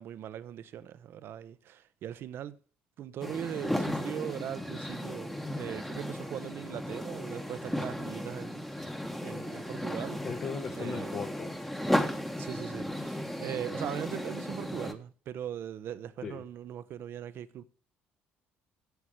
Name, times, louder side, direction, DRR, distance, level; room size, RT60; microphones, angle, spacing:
voice 1, 0.0-2.6 3.0-8.7 9.2-10.2 10.7-11.2 12.4-17.6, right 10 dB, 60° right, 0.7 m, -40 dB
sound 1, 3.2-14.9, equal, 5° left, 1.1 m, -35 dB
voice 2, 10.2-11.5 16.2-16.4, left 5 dB, 45° left, 1.2 m, -37 dB
8.0 x 7.5 x 5.0 m
supercardioid pair, 70°, 4 cm